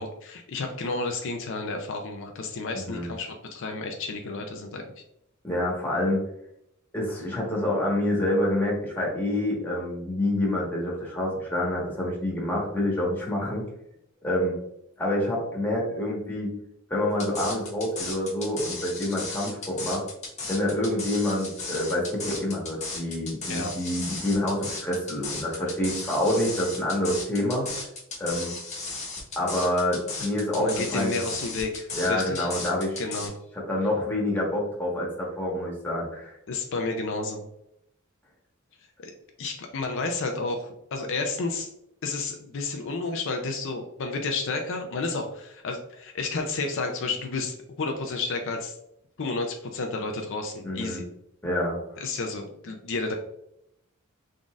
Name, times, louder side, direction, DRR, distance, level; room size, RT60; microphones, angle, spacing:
voice 1, 0.0-4.8 23.5-23.7 30.6-32.5 33.0-33.3 36.5-37.5 39.0-39.1 39.4-41.7 42.0-48.7 49.2-51.1 52.0-53.1, left 3 dB, 60° left, 4 dB, 0.5 m, -31 dB
voice 2, 2.7-3.1 5.4-6.2 6.9-13.6 14.2-14.6 15.0-16.5 16.9-20.0 20.5-27.7 28.2-28.5 29.3-31.2 31.9-33.0 33.7-36.3 50.6-51.0 51.4-51.8, left 1 dB, 10° left, -4 dB, 1.3 m, -27 dB
sound 1, 17.2-33.3, left 3 dB, 30° left, 1.1 m, -35 dB
3.9 x 3.7 x 2.4 m, 0.79 s
head